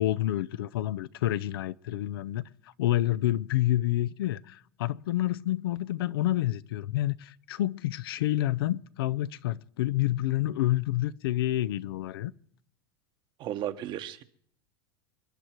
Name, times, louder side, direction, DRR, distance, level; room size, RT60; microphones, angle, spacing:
voice 1, 0.0-2.4 2.8-12.3, left 14 dB, 80° left, 0.6 m, -28 dB
voice 2, 13.4-14.2, right 11 dB, 40° right, 1.2 m, -34 dB
28.0 x 10.0 x 4.6 m
supercardioid pair, 125°, 12 cm